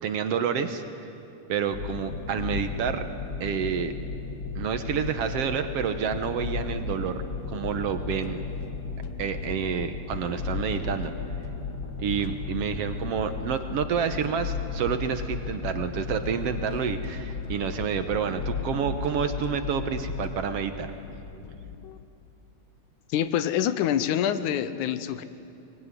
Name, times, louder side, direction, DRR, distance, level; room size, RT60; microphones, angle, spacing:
voice 1, 0.0-0.8 1.5-3.0 3.4-3.9 4.6-7.2 7.5-8.4 9.2-11.1 12.0-20.9, right 7 dB, 65° right, 8 dB, 1.8 m, -29 dB
sound 1, 1.7-20.3, left 4 dB, 40° left, 1.8 m, -35 dB
sound 2, 4.5-22.1, left 7 dB, 70° left, 1.3 m, -46 dB
voice 2, 23.1-25.2, left 10 dB, 90° left, 12 dB, 2.3 m, -26 dB
22.5 x 21.0 x 9.6 m, 2.7 s
omnidirectional pair, 3.4 m